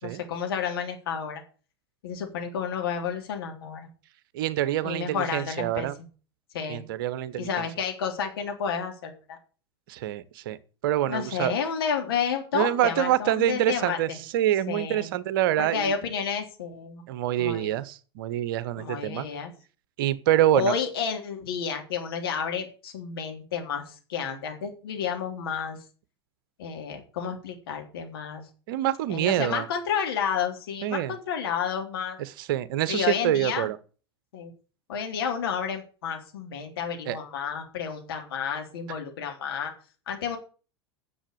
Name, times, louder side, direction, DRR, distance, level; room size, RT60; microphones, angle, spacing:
voice 1, 0.0-1.4 2.0-3.9 4.8-5.9 6.5-6.8 7.4-9.4 11.1-14.2 14.7-15.1 15.6-17.0 17.4-17.8 18.8-19.5 20.5-25.8 26.6-28.4 29.1-32.2 32.9-33.7 34.3-34.5 34.9-39.7 40.1-40.4, left 7 dB, 60° left, 3.5 m, -31 dB
voice 2, 4.3-5.9 6.7-7.7 9.9-10.6 10.8-11.5 12.5-15.9 17.1-19.2 20.0-20.8 28.7-29.7 30.8-31.1 32.2-33.8 37.1-37.2, right 12 dB, 55° right, 1.0 m, -26 dB
10.0 x 7.2 x 8.3 m
figure-of-eight pair, 85°, 14 cm